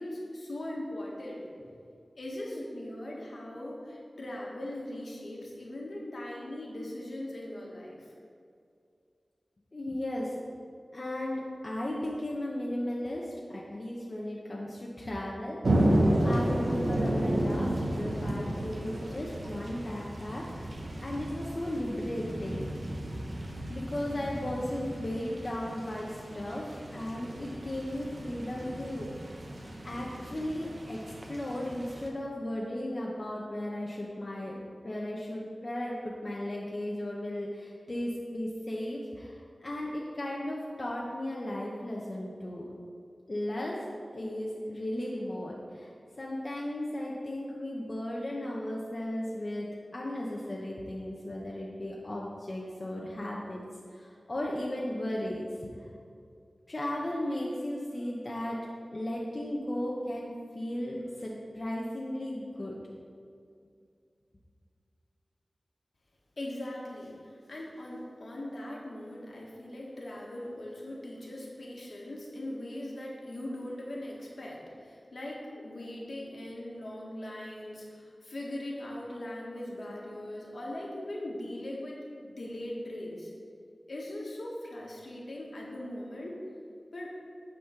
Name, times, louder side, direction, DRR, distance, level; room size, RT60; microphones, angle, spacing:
voice 1, 0.0-1.4 2.1-8.1 66.4-83.3 83.9-86.4 86.9-87.2, left 1 dB, 70° left, -3 dB, 1.7 m, -40 dB
voice 2, 9.7-10.4 10.9-22.7 23.7-29.4 29.8-42.7 43.3-43.8 44.1-45.9 46.2-53.6 53.9-55.9 56.7-58.6 58.9-62.8, left 1 dB, 40° left, -4 dB, 0.9 m, -36 dB
sound 1, 15.6-32.1, right 1 dB, 60° right, 1.1 m, -32 dB
9.5 x 4.2 x 5.9 m, 2.4 s
wide cardioid pair, 85°, 0 cm